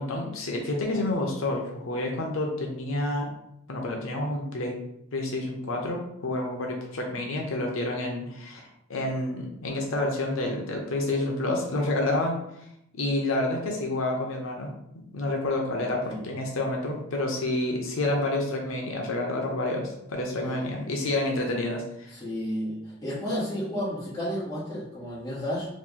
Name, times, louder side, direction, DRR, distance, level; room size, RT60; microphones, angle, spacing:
voice 1, 0.0-3.3 3.7-4.7 5.1-12.3 13.0-14.7 15.1-22.1, left 2 dB, 85° left, 1 dB, 0.6 m, -29 dB
voice 2, 22.1-25.7, equal, 15° left, -9 dB, 1.3 m, -32 dB
3.0 x 2.5 x 3.7 m, 0.78 s
head